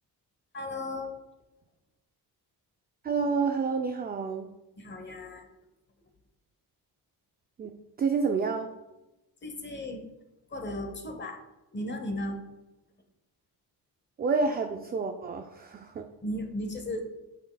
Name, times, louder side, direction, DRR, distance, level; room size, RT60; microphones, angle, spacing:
voice 1, 0.5-1.2 4.8-5.5 9.4-10.0 10.5-11.4 11.7-12.4 16.2-17.0, left 1 dB, 30° left, 5 dB, 0.9 m, -35 dB
voice 2, 3.0-4.5 7.6-7.7 8.0-8.7 14.2-16.1, right 4 dB, 25° right, 5 dB, 0.3 m, -29 dB
7.9 x 5.6 x 2.2 m, 0.98 s
cardioid pair, 125°, 40 cm